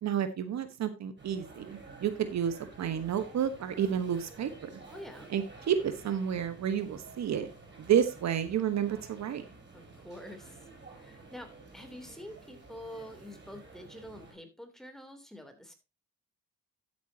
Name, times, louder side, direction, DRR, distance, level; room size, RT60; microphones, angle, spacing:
voice 1, 0.0-4.8 5.3-7.5 7.8-9.4, right 9 dB, 65° right, 11 dB, 1.4 m, -30 dB
sound 1, 1.2-14.4, right 3 dB, 35° right, 7.2 m, -51 dB
voice 2, 4.9-5.3 9.7-15.7, left 1 dB, ahead, 6 dB, 3.2 m, -47 dB
12.5 x 9.3 x 2.8 m, 0.25 s
cardioid pair, 90°, 30 cm